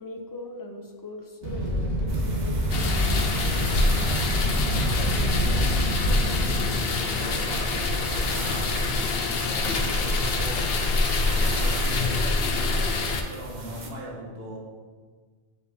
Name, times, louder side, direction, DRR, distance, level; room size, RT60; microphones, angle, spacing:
voice 1, 0.0-4.0, left 2 dB, 30° left, 3 dB, 0.4 m, -41 dB
Fire, 1.4-6.7, equal, 90° right, 1.7 m, -26 dB
sound 1, 2.1-13.9, right 1 dB, 45° right, 0.9 m, -37 dB
sound 2, 2.7-13.2, left 3 dB, 65° left, 0.8 m, -26 dB
voice 2, 4.5-12.9 13.3-14.6, right 1 dB, 65° right, -3 dB, 1.4 m, -40 dB
8.1 x 5.1 x 2.7 m, 1.5 s
omnidirectional pair, 1.1 m